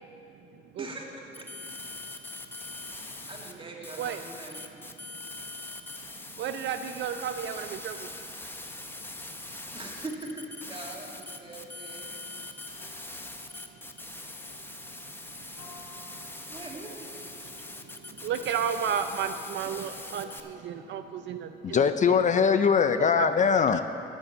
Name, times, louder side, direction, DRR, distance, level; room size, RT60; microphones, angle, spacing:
voice 1, 0.8-1.4 2.9-4.8 9.7-12.1 16.5-17.0, right 2 dB, 25° right, -1 dB, 2.0 m, -42 dB
sound 1, 1.3-3.5 3.8-20.4, left 2 dB, 10° left, 0.8 m, -42 dB
voice 2, 6.4-8.1 16.1-16.2 17.4-17.7 18.0-22.3 23.0-23.3, right 8 dB, 65° right, 8 dB, 0.5 m, -33 dB
sound 2, 12.8-22.4, left 4 dB, 90° left, 1.2 m, -56 dB
voice 3, 21.6-23.8, left 6 dB, 40° left, 10 dB, 0.4 m, -22 dB
10.0 x 8.3 x 7.0 m, 2.9 s
cardioid pair, 90°, 20 cm